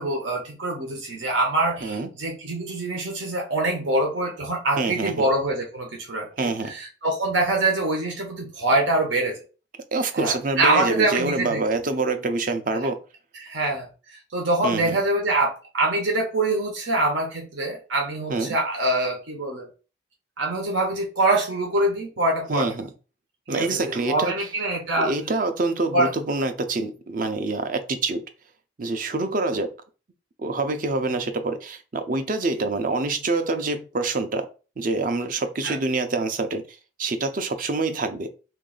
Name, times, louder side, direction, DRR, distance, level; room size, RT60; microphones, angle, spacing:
voice 1, 0.0-9.4 10.2-11.6 12.8-12.9 13.4-13.9 14.3-19.7 20.4-22.7 23.5-25.1 25.9-26.1 35.6-35.8, right 2 dB, 85° right, 0 dB, 1.0 m, -24 dB
voice 2, 4.8-5.3 6.4-6.7 9.9-13.0 14.6-15.0 18.3-18.6 22.5-22.9 23.5-24.5 25.0-28.2 28.8-29.7 30.4-34.5 34.8-36.6 37.0-38.3, right 3 dB, 45° right, 8 dB, 0.5 m, -26 dB
3.1 x 2.6 x 3.8 m, 0.33 s
head